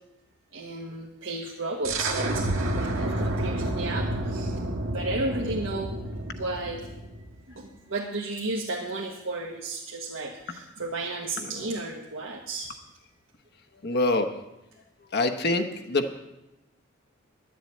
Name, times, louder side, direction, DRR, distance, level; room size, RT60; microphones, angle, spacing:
voice 1, 0.5-4.6 4.9-6.0 6.4-6.9 7.5-12.7, right 2 dB, 70° right, -2 dB, 1.4 m, -33 dB
sound 1, 1.8-7.3, right 1 dB, 90° right, 1.6 m, -30 dB
voice 2, 13.8-14.3 15.1-16.2, left 2 dB, 55° left, 5 dB, 1.0 m, -25 dB
12.0 x 7.7 x 8.6 m, 0.93 s
head